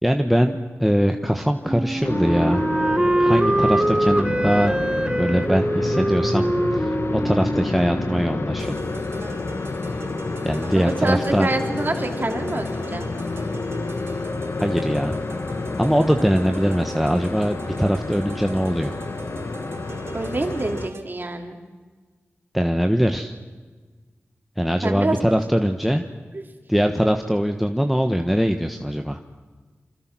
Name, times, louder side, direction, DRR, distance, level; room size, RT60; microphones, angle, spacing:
voice 1, 0.0-2.6 3.2-4.8 5.1-6.5 6.7-7.0 7.2-8.8 10.4-11.5 14.6-15.2 15.8-18.9 22.5-23.3 24.6-26.0 26.7-29.2, equal, ahead, 5 dB, 1.3 m, -21 dB
Wind instrument woodwind instrument, 1.6-8.5, right 1 dB, 20° right, 0.8 m, -23 dB
sound 1, 2.0-20.9, left 3 dB, 65° left, 1.4 m, -29 dB
sound 2, 8.6-21.0, right 3 dB, 65° right, 2.7 m, -40 dB
voice 2, 10.7-13.1 20.1-21.6 24.8-25.2 26.3-26.4, right 2 dB, 45° right, 3 dB, 3.4 m, -26 dB
27.0 x 25.5 x 6.2 m, 1.4 s
wide cardioid pair, 55°, 5 cm